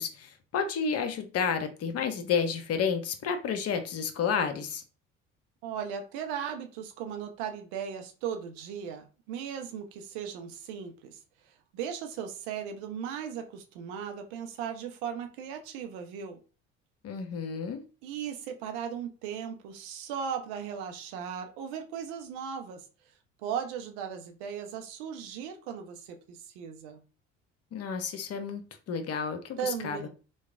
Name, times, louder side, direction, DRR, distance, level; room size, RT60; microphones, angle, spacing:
voice 1, 0.0-4.8 17.0-17.8 27.7-30.1, left 6 dB, 40° left, 0.7 m, -31 dB
voice 2, 5.6-11.2 11.4-16.4 18.0-22.9 23.4-27.0 29.6-30.1, right 8 dB, 65° right, 0.7 m, -37 dB
3.1 x 2.2 x 3.6 m
figure-of-eight pair, 55°, 36 cm